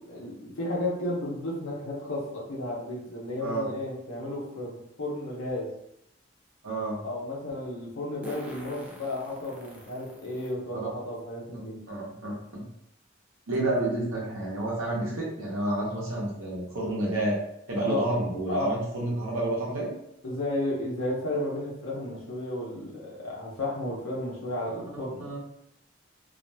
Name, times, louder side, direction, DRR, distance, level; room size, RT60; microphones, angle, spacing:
voice 1, 0.0-5.7 7.0-11.8 17.7-18.0 18.5-18.7 20.2-25.2, left 1 dB, 85° left, -4 dB, 0.8 m, -33 dB
Fart, 5.5-5.6 8.2-10.5 11.2-11.3 12.5-12.6 13.0-13.1 13.5-13.8, equal, 5° right, 0.4 m, -46 dB
voice 2, 6.6-7.0 11.9-12.6 13.5-17.3 17.7-19.9 24.9-25.4, right 1 dB, 90° right, -3 dB, 0.8 m, -30 dB
2.5 x 2.2 x 2.6 m, 0.78 s
head